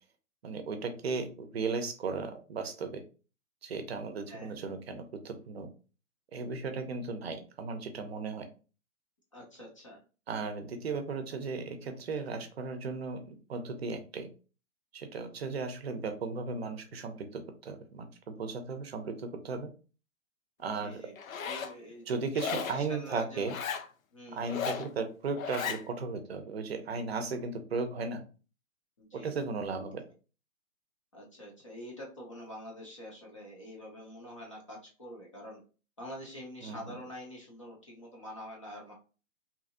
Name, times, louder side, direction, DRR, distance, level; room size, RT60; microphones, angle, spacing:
voice 1, 0.4-3.0 3.6-5.7 6.3-8.5 10.3-14.3 14.9-19.7 20.6-21.0 22.1-23.5 24.3-28.2 29.1-30.0 36.6-36.8, right 4 dB, 50° right, 7 dB, 0.6 m, -36 dB
voice 2, 9.3-10.0 20.7-21.1 21.4-22.2 22.4-23.5 24.1-24.6 29.0-29.4 31.1-35.6 36.0-38.9, left 1 dB, 25° left, -2 dB, 0.5 m, -46 dB
Zipper (clothing), 21.2-21.7 22.3-22.8 23.4-23.9 24.4-24.9 25.4-25.8, left 7 dB, 80° left, 0.6 m, -35 dB
2.8 x 2.5 x 2.5 m, 0.35 s
hypercardioid pair, 160°, 40 cm